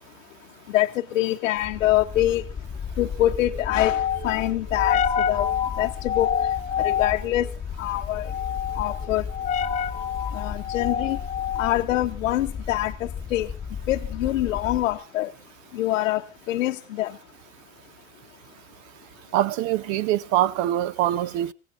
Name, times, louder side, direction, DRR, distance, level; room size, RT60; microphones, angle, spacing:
voice 1, 0.7-2.5 3.0-5.0 5.3-5.5 5.8-6.4 6.8-7.5 7.8-8.3 8.8-9.2 10.3-11.2 11.6-13.5 13.9-15.3 15.7-17.1, left 14 dB, 75° left, 0.9 m, -25 dB
sound 1, 1.6-15.0, left 8 dB, 20° left, 1.8 m, -29 dB
voice 2, 19.3-21.5, right 12 dB, 45° right, 0.9 m, -23 dB
25.5 x 16.5 x 2.6 m
hypercardioid pair, 90°, 39 cm